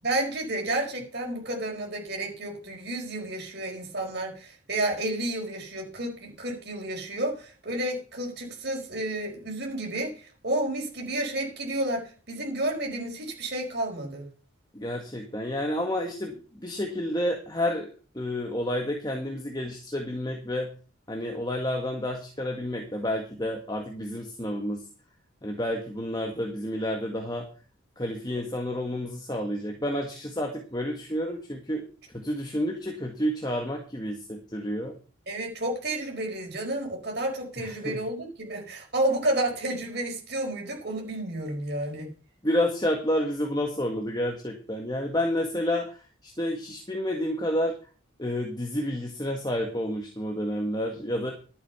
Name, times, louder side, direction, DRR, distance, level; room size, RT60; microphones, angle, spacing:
voice 1, 0.0-14.3 35.3-42.1, right 1 dB, 50° right, 0 dB, 4.8 m, -31 dB
voice 2, 14.7-17.9 18.1-20.7 21.1-24.8 25.4-27.5 28.0-31.8 32.1-34.9 37.6-38.0 42.4-47.8 48.2-51.3, left 1 dB, 20° left, 2 dB, 1.7 m, -30 dB
12.0 x 8.4 x 5.8 m, 0.37 s
head